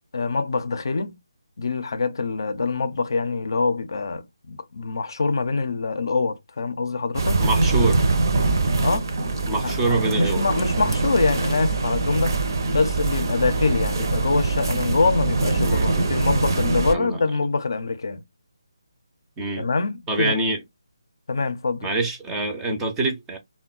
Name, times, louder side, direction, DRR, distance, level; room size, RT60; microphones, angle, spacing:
voice 1, 0.1-1.2 1.6-7.4 8.8-9.1 9.6-18.2 19.6-20.4 21.3-21.9, left 4 dB, 60° left, 0.5 m, -25 dB
sound 1, 7.1-16.9, right 3 dB, 50° right, 0.6 m, -23 dB
voice 2, 7.4-8.0 9.5-10.4 15.6-16.2 16.9-17.2 19.4-19.7 20.1-20.6 21.8-23.4, right 2 dB, 10° right, 0.5 m, -25 dB
3.6 x 2.1 x 2.3 m
figure-of-eight pair, 160°, 2 cm